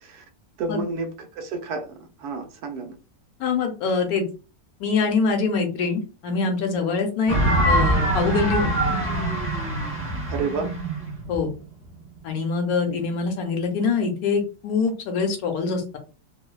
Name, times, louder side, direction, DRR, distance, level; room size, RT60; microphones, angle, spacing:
voice 1, 0.6-2.9 7.3-7.5 10.3-10.7 12.9-13.0, right 4 dB, 80° right, 5 dB, 1.2 m, -30 dB
voice 2, 3.4-4.2 4.8-7.4 7.6-8.7 11.3-11.5 12.2-16.0, left 4 dB, 75° left, 5 dB, 1.1 m, -24 dB
sound 1, 7.3-12.2, right 1 dB, 20° right, 0.3 m, -23 dB
3.0 x 2.0 x 2.2 m, 0.33 s
omnidirectional pair, 1.6 m